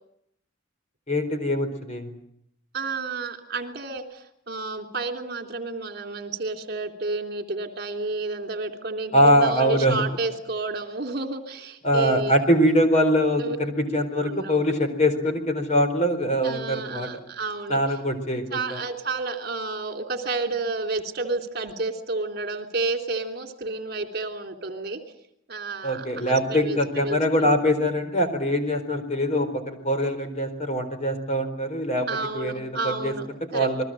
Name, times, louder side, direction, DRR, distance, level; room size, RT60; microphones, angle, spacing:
voice 1, 1.1-2.1 9.1-10.0 11.8-17.1 17.7-18.8 25.8-32.1 32.3-33.1 33.5-33.8, equal, 35° left, 8 dB, 4.2 m, -23 dB
voice 2, 2.7-12.4 13.4-13.6 14.2-14.5 16.4-18.0 18.5-25.0 25.5-27.5 32.1-33.8, right 3 dB, 50° right, 5 dB, 3.2 m, -31 dB
29.0 x 21.5 x 7.7 m, 0.72 s
head